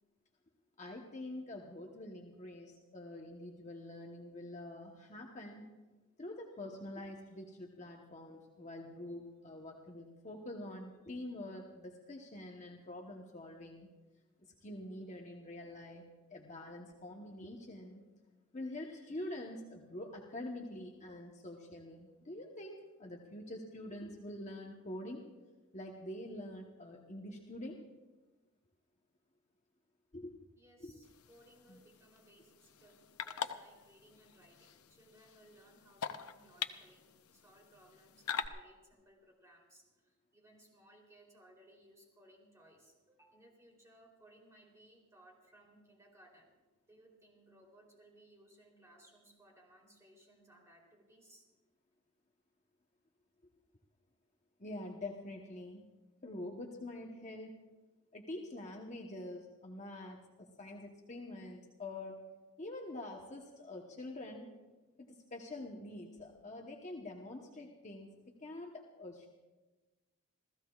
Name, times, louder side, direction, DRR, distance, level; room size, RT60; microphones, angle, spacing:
voice 1, 0.8-5.7 6.2-13.9 14.4-16.0 16.3-18.0 18.5-25.2 25.7-27.8 30.1-30.3 30.8-30.9 31.7-31.8 54.6-55.8 56.2-57.6 58.1-62.3 62.6-64.5 65.0-69.3, left 1 dB, 35° left, 0 dB, 1.0 m, -46 dB
voice 2, 30.6-46.5 46.9-51.5, right 1 dB, 15° right, -1 dB, 3.3 m, -63 dB
sound 1, 31.0-38.5, left 7 dB, 80° left, 0.7 m, -44 dB
28.5 x 15.5 x 2.4 m, 1.2 s
head